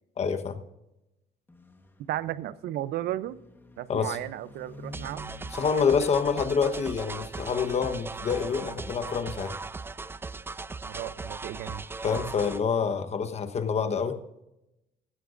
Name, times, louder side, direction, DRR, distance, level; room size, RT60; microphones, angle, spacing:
voice 1, 0.2-0.6 3.9-4.2 5.5-9.6 12.0-14.2, left 6 dB, 40° left, 1.2 m, -27 dB
sound 1, 1.5-7.0, equal, 10° left, 1.6 m, -49 dB
voice 2, 2.1-3.4 3.8-5.2 10.8-11.8, right 13 dB, 75° right, 0.6 m, -34 dB
sound 2, 4.9-12.6, right 3 dB, 15° right, 0.3 m, -38 dB
16.0 x 13.0 x 2.6 m
cardioid pair, 110°, 17 cm